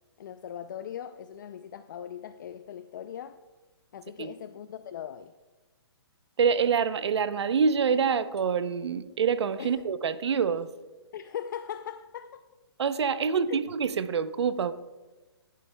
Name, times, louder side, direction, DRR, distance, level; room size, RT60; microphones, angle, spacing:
voice 1, 0.2-3.4 3.9-5.3 9.6-9.8 11.1-12.4 13.3-13.6, left 9 dB, 45° left, 12 dB, 0.4 m, -40 dB
voice 2, 6.4-10.7 12.8-14.7, right 6 dB, 80° right, 14 dB, 0.7 m, -26 dB
17.5 x 11.5 x 2.2 m, 1.2 s
hypercardioid pair, 160°, 14 cm